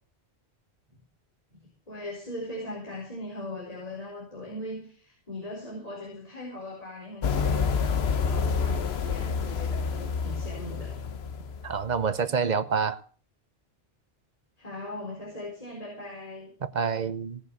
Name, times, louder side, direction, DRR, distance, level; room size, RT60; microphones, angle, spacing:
voice 1, 1.9-11.0 14.6-16.5, left 1 dB, 35° left, 4.5 m, -39 dB
sound 1, 7.2-11.9, left 5 dB, 70° left, 1.2 m, -28 dB
voice 2, 11.6-13.0 16.6-17.4, right 6 dB, 45° right, 0.9 m, -27 dB
17.5 x 6.6 x 8.3 m
omnidirectional pair, 1.1 m